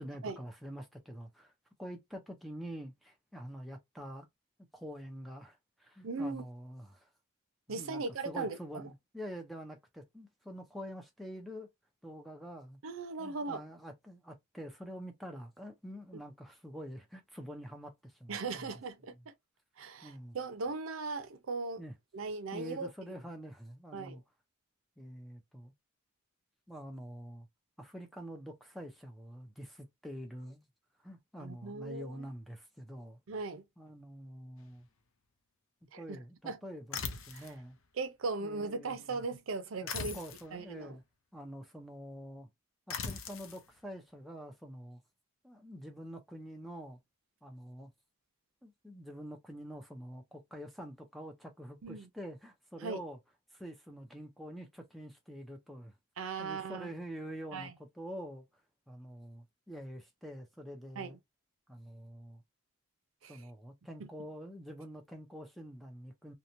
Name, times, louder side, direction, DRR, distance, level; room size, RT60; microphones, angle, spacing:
voice 1, 0.0-1.5 1.8-4.3 4.7-7.1 7.7-11.7 12.0-12.8 13.2-18.7 20.0-20.4 21.8-21.9 22.5-24.2 25.0-25.7 26.7-27.5 27.8-30.7 31.0-33.2 33.8-34.9 36.0-37.8 38.4-39.2 39.8-41.0 41.3-42.5 42.9-45.0 45.4-47.0 47.4-47.9 48.6-53.2 53.5-55.9 56.4-58.5 58.9-61.2 61.7-62.4 63.3-66.3, equal, ahead, 0.5 m, -46 dB
voice 2, 6.0-6.4 7.7-8.6 12.8-13.6 18.3-19.3 19.8-21.8 22.1-22.9 23.9-24.2 31.4-32.3 33.3-33.6 35.9-36.2 36.4-36.6 37.3-37.5 38.0-40.2 40.5-41.0 51.8-52.1 52.8-53.0 56.2-56.9 57.5-57.7 61.0-61.2 63.2-63.5 64.0-64.1, right 4 dB, 75° right, 0.5 m, -38 dB
sound 1, 36.9-37.6 39.9-40.5 42.9-43.6, left 6 dB, 75° left, 0.5 m, -39 dB
2.9 x 2.1 x 2.5 m
head